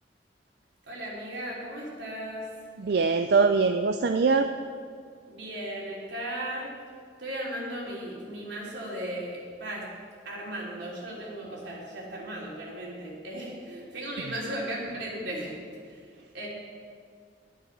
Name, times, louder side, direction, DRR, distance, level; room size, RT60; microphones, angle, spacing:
voice 1, 0.8-2.5 5.3-6.7 7.2-9.9 10.2-15.6 15.8-16.5, right 1 dB, 85° right, -4 dB, 3.4 m, -36 dB
voice 2, 2.8-4.5, right 4 dB, 60° right, 7 dB, 0.4 m, -22 dB
11.0 x 9.8 x 5.9 m, 2.1 s
head